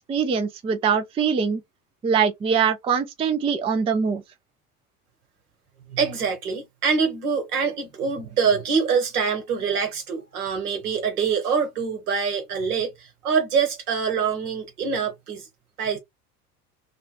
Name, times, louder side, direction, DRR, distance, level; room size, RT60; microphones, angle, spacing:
voice 1, 0.0-1.6 2.0-4.2, right 6 dB, 15° right, 0.4 m, -23 dB
voice 2, 5.9-15.5 15.8-16.0, right 6 dB, 75° right, 1.6 m, -25 dB
3.2 x 2.3 x 3.0 m
hypercardioid pair, 80°, 46 cm